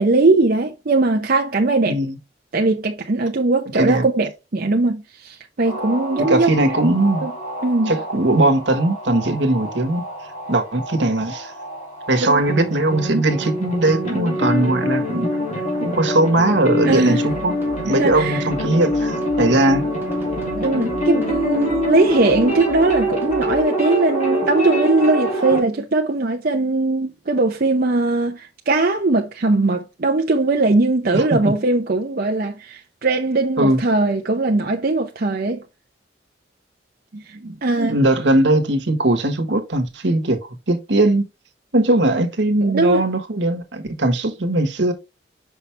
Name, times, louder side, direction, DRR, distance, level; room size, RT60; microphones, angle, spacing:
voice 1, 0.0-2.0 2.5-6.5 7.2-7.3 7.6-7.9 12.2-12.4 16.8-17.3 17.9-18.5 20.5-35.6 37.1-37.9 42.6-43.0, right 2 dB, 50° right, 0.7 m, -20 dB
voice 2, 1.9-2.2 3.7-4.0 6.3-7.3 7.9-10.0 10.5-11.5 12.1-15.3 15.8-17.5 17.8-19.8 31.1-31.4 33.6-33.8 37.8-40.4 40.7-41.2 41.7-44.9, right 1 dB, 70° right, 1.3 m, -19 dB
sound 1, 5.6-25.6, equal, 40° left, 2.9 m, -25 dB
sound 2, 17.2-23.6, equal, 10° right, 1.6 m, -38 dB
5.8 x 5.6 x 3.3 m
head